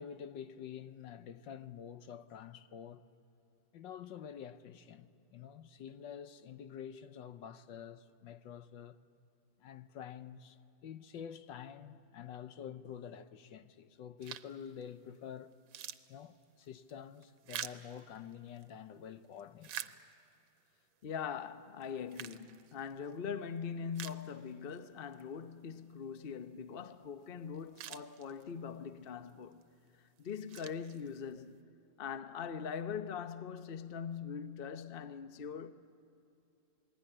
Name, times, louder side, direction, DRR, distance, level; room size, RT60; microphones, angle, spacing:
voice 1, 0.0-3.0 3.7-9.0 9.6-10.6 10.8-15.5 16.1-19.9, left 8 dB, 70° left, 1.5 m, -48 dB
sound 1, 14.2-14.7 15.1-15.2 15.5-18.7 19.2-20.5 21.0-21.1 21.8-23.2 23.6-23.7 23.9-24.8 25.1-25.2 27.2-27.3 27.5-28.7 29.3-29.6 30.2-31.4, right 10 dB, 80° right, 1.6 m, -47 dB
voice 2, 21.0-29.6 30.2-31.6 32.0-35.7, left 7 dB, 50° left, 0.6 m, -42 dB
27.5 x 20.5 x 10.0 m
omnidirectional pair, 2.1 m